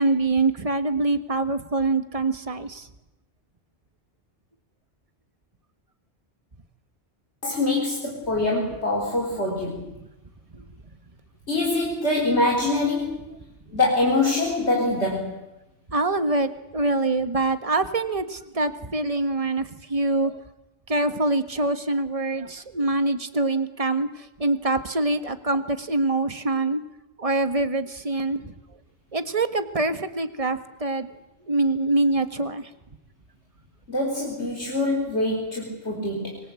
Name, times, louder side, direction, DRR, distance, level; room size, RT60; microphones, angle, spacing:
voice 1, 0.0-2.9 10.5-10.6 15.9-20.3 20.9-24.1 24.4-26.8 27.2-28.5 29.1-31.1 31.5-32.7, right 2 dB, 30° right, 9 dB, 1.6 m, -24 dB
voice 2, 7.4-9.9 11.5-13.2 13.7-15.4 33.9-36.4, left 2 dB, 70° left, -1 dB, 4.4 m, -24 dB
25.5 x 25.0 x 8.5 m, 0.97 s
omnidirectional pair, 1.2 m